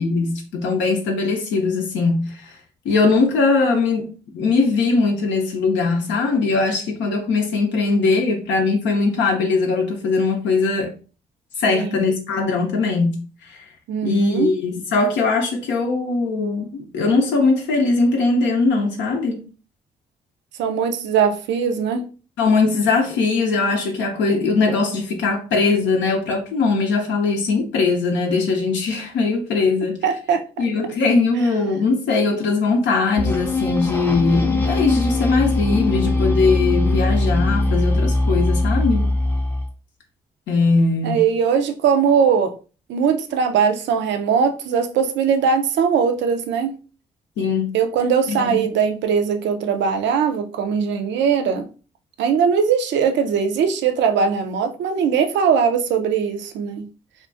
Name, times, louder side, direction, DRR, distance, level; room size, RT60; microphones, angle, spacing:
voice 1, 0.0-2.5 2.8-4.1 4.3-10.9 11.6-13.7 14.0-19.4 22.4-30.0 30.6-39.1 40.5-41.2 47.4-47.7 48.3-48.6, left 3 dB, 70° left, 0.5 m, -20 dB
voice 2, 13.9-14.5 20.6-22.0 30.0-30.6 41.0-42.5 42.9-46.7 47.7-51.7 52.2-56.8, right 6 dB, 70° right, 0.5 m, -20 dB
sound 1, 33.2-39.7, left 2 dB, 10° left, 0.5 m, -21 dB
2.2 x 2.2 x 2.5 m
hypercardioid pair, 45°, 19 cm